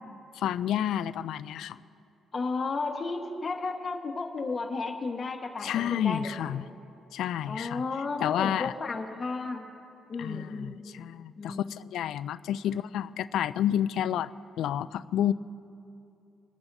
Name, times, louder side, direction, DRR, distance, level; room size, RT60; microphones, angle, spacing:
voice 1, 0.3-1.8 5.6-6.7 7.1-7.8 8.2-8.7 10.2-14.3 14.6-15.3, left 10 dB, 80° left, 16 dB, 0.3 m, -30 dB
voice 2, 2.3-6.6 7.5-9.7 10.1-10.8 11.4-11.7 12.6-12.8, left 3 dB, 40° left, 3 dB, 1.3 m, -33 dB
24.0 x 11.5 x 2.7 m, 2.7 s
cardioid pair, 90°, 0 cm